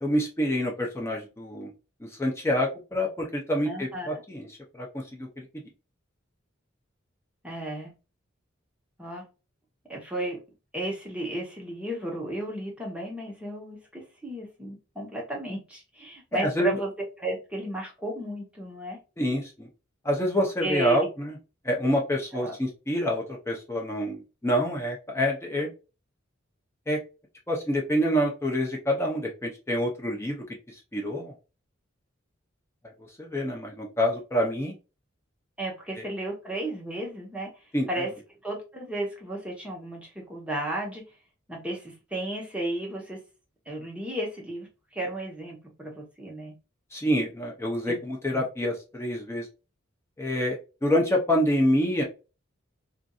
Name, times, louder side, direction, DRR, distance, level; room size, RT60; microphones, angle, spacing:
voice 1, 0.0-1.7 2.0-4.5 4.7-5.5 16.3-16.8 19.2-19.7 20.0-21.4 21.6-25.7 26.9-27.0 27.5-31.3 33.2-34.7 37.7-37.9 46.9-49.5 50.2-52.0, equal, 15° left, -1 dB, 0.6 m, -27 dB
voice 2, 3.6-4.2 7.4-7.9 9.0-9.2 9.9-10.4 10.7-16.9 17.2-19.0 20.6-21.1 22.3-22.5 35.6-37.5 37.9-38.1 38.4-41.1 41.5-43.2 43.7-46.5 47.9-48.0 48.3-48.4, right 1 dB, 5° right, -2 dB, 0.9 m, -34 dB
2.6 x 2.5 x 2.3 m, 0.30 s
head